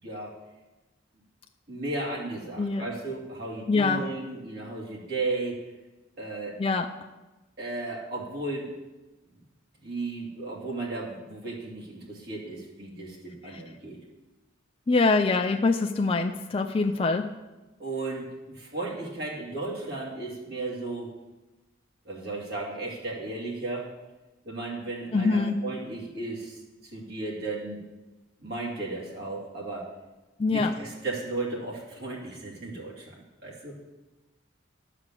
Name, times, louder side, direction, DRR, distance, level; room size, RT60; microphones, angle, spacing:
voice 1, 0.0-0.3 1.7-5.6 6.2-6.6 7.6-8.7 9.8-14.0 17.8-21.1 22.0-23.9 24.4-27.8 28.4-29.9 30.5-33.8, right 2 dB, 55° right, -4 dB, 2.5 m, -35 dB
voice 2, 3.7-4.0 6.6-6.9 14.9-17.3 25.1-25.6 30.4-30.7, left 3 dB, 30° left, 5 dB, 0.4 m, -24 dB
11.5 x 5.0 x 7.5 m, 1.1 s
head